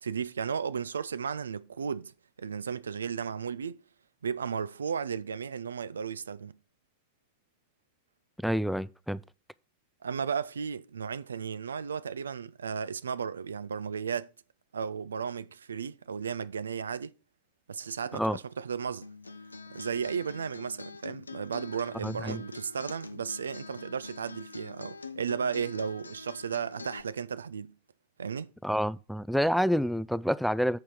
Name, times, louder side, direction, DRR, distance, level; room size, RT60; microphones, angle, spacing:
voice 1, 0.0-3.8 4.2-6.6 10.0-14.3 14.7-17.1 17.7-19.1 19.7-27.7 28.2-28.5, right 6 dB, 70° right, 0.4 m, -34 dB
voice 2, 8.4-9.2 18.1-18.4 22.0-22.4 28.6-30.8, equal, ahead, 0.3 m, -28 dB
Acoustic guitar, 19.0-27.0, left 4 dB, 80° left, 0.6 m, -45 dB
8.8 x 5.7 x 4.5 m
figure-of-eight pair, 90°, 0 cm